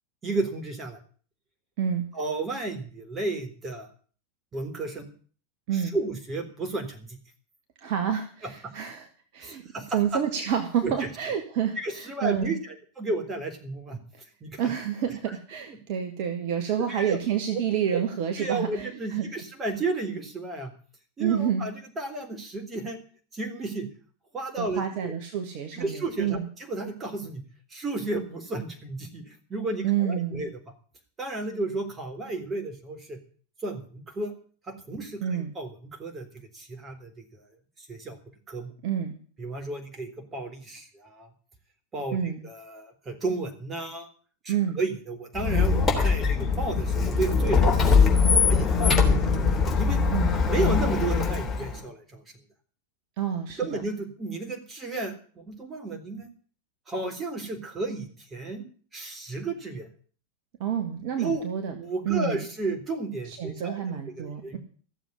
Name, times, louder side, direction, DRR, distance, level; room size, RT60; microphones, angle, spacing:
voice 1, 0.2-1.0 2.1-3.9 4.5-5.1 5.7-7.2 8.4-8.7 9.4-10.2 10.8-11.1 11.8-14.0 14.4-14.7 16.9-17.2 17.9-18.0 18.4-20.7 21.2-23.0 23.3-23.9 24.3-25.1 25.7-27.4 27.7-30.5 31.2-33.2 33.6-34.3 34.7-36.3 36.5-37.4 37.8-38.2 38.5-38.7 39.4-41.3 41.9-44.1 44.4-49.3 49.8-50.0 50.5-52.2 53.6-56.3 56.9-59.9 61.2-61.4 61.7-64.6, right 2 dB, 20° right, 4 dB, 3.7 m, -33 dB
voice 2, 7.8-9.0 9.3-9.6 9.9-12.6 14.6-19.3 21.2-21.7 24.6-26.5 29.8-30.5 35.2-35.5 38.8-39.2 42.1-42.4 44.5-44.8 50.1-50.3 53.2-53.8 60.6-61.7 62.1-62.4 63.3-64.6, right 9 dB, 45° right, 5 dB, 1.8 m, -28 dB
Squeak, 45.4-51.8, left 5 dB, 15° left, 3.4 m, -22 dB
15.0 x 7.4 x 9.8 m, 0.43 s
figure-of-eight pair, 90°, 0 cm